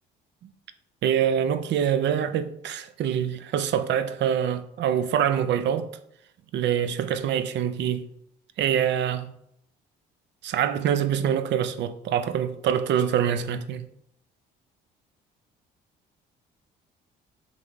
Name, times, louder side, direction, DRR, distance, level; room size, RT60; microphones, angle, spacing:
voice 1, 1.0-5.9 6.5-8.1 8.6-9.3 10.4-13.9, right 9 dB, 60° right, 0.5 m, -25 dB
3.3 x 3.3 x 3.8 m
hypercardioid pair, 65°, 21 cm